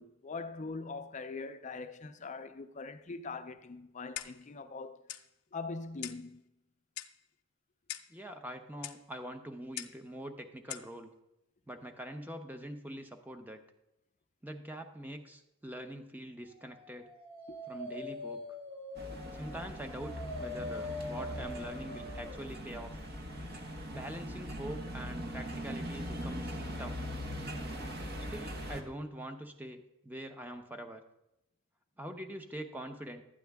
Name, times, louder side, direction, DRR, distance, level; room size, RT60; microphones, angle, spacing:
voice 1, 0.0-5.0 5.5-6.4 17.5-17.6, left 3 dB, 35° left, 0.4 m, -42 dB
Clock, 4.2-4.5 5.1-5.3 6.0-6.3 7.0-7.2 7.9-8.2 8.8-9.0 9.8-10.0 10.7-10.9, left 13 dB, 80° left, 0.6 m, -42 dB
voice 2, 8.1-11.1 11.7-13.6 14.4-17.1 17.7-18.6 19.3-23.0 23.9-27.0 28.3-31.0 32.0-33.2, right 1 dB, 10° right, 0.7 m, -44 dB
Dog, 16.8-22.4, left 2 dB, 25° right, 1.6 m, -43 dB
sound 1, 18.9-28.8, equal, 45° right, 1.1 m, -41 dB
12.5 x 9.0 x 3.5 m
head